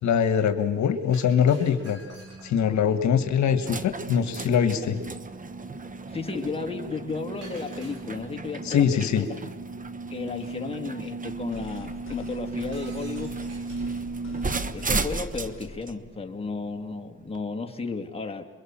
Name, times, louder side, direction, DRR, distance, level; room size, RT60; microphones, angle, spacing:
voice 1, 0.0-2.0 2.4-5.0 8.6-9.3, left 8 dB, 70° left, 8 dB, 1.6 m, -23 dB
Shatter, 1.1-2.8 7.4-8.5 12.7-14.0, right 2 dB, 55° right, 6.0 m, -50 dB
sound 1, 1.7-17.4, right 3 dB, 25° right, 1.1 m, -35 dB
voice 2, 6.1-9.4 10.1-13.4 14.7-18.4, left 4 dB, 20° left, 4 dB, 2.5 m, -33 dB
sound 2, 11.5-15.9, left 6 dB, 40° left, 3.8 m, -45 dB
28.0 x 23.0 x 7.5 m, 1.4 s
cardioid pair, 90°, 30 cm